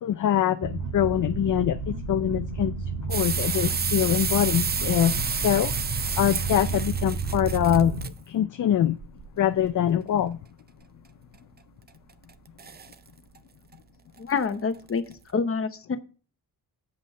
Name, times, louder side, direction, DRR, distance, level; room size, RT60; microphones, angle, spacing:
voice 1, 0.0-2.8 3.1-5.2 5.4-8.0 8.3-9.0 9.4-10.4, left 10 dB, 50° left, 0.5 m, -24 dB
sound 1, 0.6-8.1, right 4 dB, 50° right, 1.4 m, -31 dB
sound 2, 3.1-8.1 9.0-9.7 11.3-11.4 11.9-12.3 12.6-13.0 13.4-13.5 13.7-13.8 14.3-14.4 14.9-15.1, right 6 dB, 25° right, 0.4 m, -30 dB
voice 2, 14.2-16.0, left 5 dB, 35° left, 0.9 m, -27 dB
8.2 x 5.2 x 5.4 m
wide cardioid pair, 120°, 39 cm